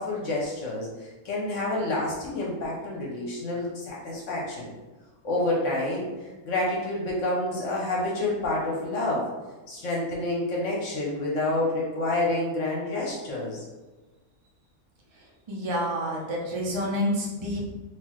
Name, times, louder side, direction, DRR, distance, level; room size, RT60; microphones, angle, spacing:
voice 1, 0.0-4.7 5.2-9.3 9.7-13.6, left 2 dB, 60° left, -3 dB, 1.0 m, -28 dB
voice 2, 15.5-17.7, equal, 50° right, -2 dB, 0.3 m, -28 dB
3.7 x 2.6 x 3.0 m, 1.2 s
omnidirectional pair, 1.5 m